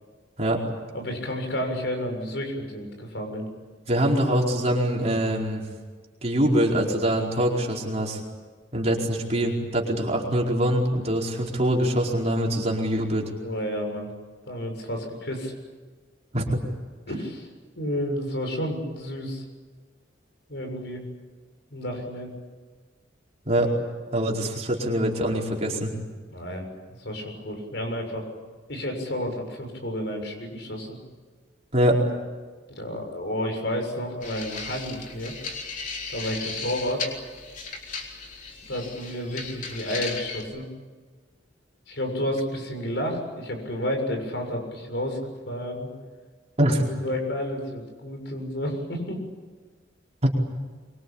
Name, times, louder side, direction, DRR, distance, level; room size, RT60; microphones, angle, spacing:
voice 1, 0.9-3.5 13.4-14.1 14.4-15.5 17.1-17.5 17.8-19.4 20.5-21.0 21.7-22.3 26.3-26.7 27.0-28.2 28.7-31.0 32.7-35.3 36.1-37.1 38.7-40.7 41.9-45.9 46.6-49.2, equal, 65° left, 3 dB, 7.0 m, -31 dB
voice 2, 3.9-5.6 6.2-8.2 8.7-13.3 16.3-16.6 23.4-23.7 24.1-25.9 31.7-32.0 46.6-46.8 50.2-50.3, right 1 dB, 35° right, -1 dB, 4.8 m, -24 dB
sound 1, 34.2-40.4, left 4 dB, 45° left, 3.7 m, -36 dB
25.0 x 24.5 x 8.7 m, 1.4 s
head